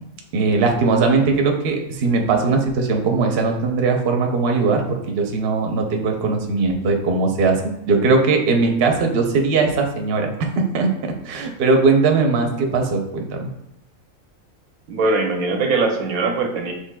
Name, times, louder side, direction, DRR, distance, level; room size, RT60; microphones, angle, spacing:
voice 1, 0.3-13.5, right 4 dB, 55° right, 3 dB, 0.8 m, -19 dB
voice 2, 14.9-16.7, right 3 dB, 90° right, 4 dB, 1.1 m, -21 dB
6.3 x 3.3 x 2.2 m, 0.81 s
omnidirectional pair, 1.4 m